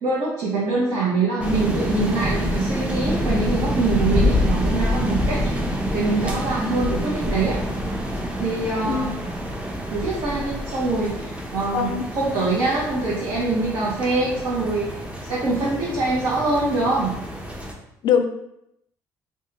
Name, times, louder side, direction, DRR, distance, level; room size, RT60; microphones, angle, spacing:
voice 1, 0.0-5.5 5.9-7.6 8.4-9.1 9.9-14.9 15.3-17.2, right 3 dB, 65° right, -7 dB, 0.8 m, -24 dB
sound 1, 1.4-17.7, equal, 15° right, 0.6 m, -27 dB
voice 2, 11.7-12.1 18.0-18.2, left 7 dB, 65° left, 7 dB, 0.4 m, -21 dB
2.6 x 2.3 x 3.0 m, 0.80 s
supercardioid pair, 65°, 8 cm